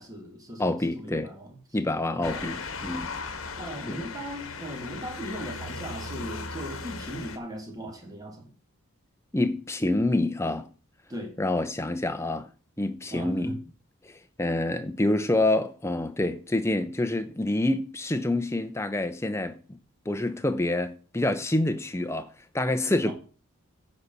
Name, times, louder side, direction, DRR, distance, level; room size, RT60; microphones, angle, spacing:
voice 1, 0.0-1.6 2.1-2.6 3.6-8.5 11.1-11.4 13.1-13.6 23.0-23.1, equal, 15° right, 1.8 m, -38 dB
voice 2, 0.6-1.3 1.7-3.1 3.9-4.0 9.3-10.7 11.4-12.5 12.8-13.6 14.0-19.6 20.1-22.3 22.5-23.1, left 1 dB, 10° left, 0.7 m, -27 dB
Motor vehicle (road) / Siren, 2.2-7.4, left 4 dB, 65° left, 1.1 m, -37 dB
9.7 x 4.2 x 6.8 m
head